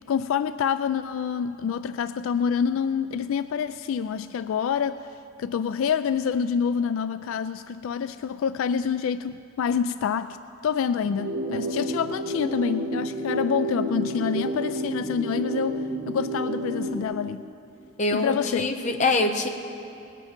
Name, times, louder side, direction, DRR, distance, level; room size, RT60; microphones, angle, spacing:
voice 1, 0.1-5.0 5.4-10.4 10.6-17.4 18.1-18.7, left 7 dB, 75° left, 13 dB, 0.3 m, -27 dB
sound 1, 11.0-17.0, right 1 dB, 35° right, 2.6 m, -30 dB
voice 2, 18.0-19.5, left 2 dB, 35° left, 5 dB, 0.8 m, -24 dB
19.0 x 8.9 x 6.0 m, 2.9 s
head